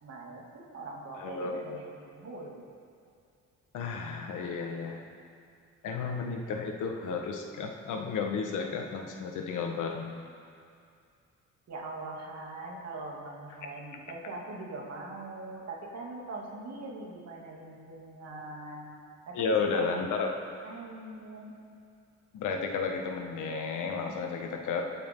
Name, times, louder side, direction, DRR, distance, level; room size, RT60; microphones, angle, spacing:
voice 1, 0.0-2.7 11.7-19.0 19.3-19.8 20.6-21.6, right 2 dB, 60° right, -2 dB, 2.8 m, -42 dB
voice 2, 1.2-1.8 3.7-5.0 5.8-10.2 19.3-20.3 22.3-24.8, left 5 dB, 85° left, 3 dB, 1.6 m, -32 dB
24.0 x 8.6 x 3.9 m, 2.4 s
cardioid pair, 90°, 30 cm